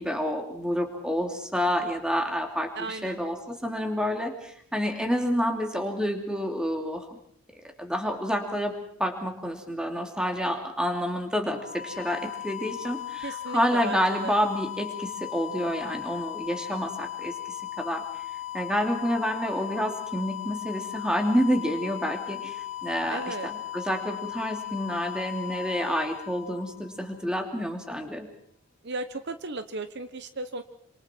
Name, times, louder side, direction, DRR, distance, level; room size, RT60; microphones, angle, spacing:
voice 1, 0.0-7.1 7.8-18.0 18.5-28.3, equal, 5° right, 4 dB, 2.7 m, -29 dB
voice 2, 2.8-3.2 13.2-14.3 23.1-23.5 28.8-30.6, right 3 dB, 55° right, 10 dB, 1.0 m, -35 dB
sound 1, 11.4-27.2, left 14 dB, 40° left, 1.7 m, -37 dB
27.5 x 26.0 x 4.5 m, 0.66 s
head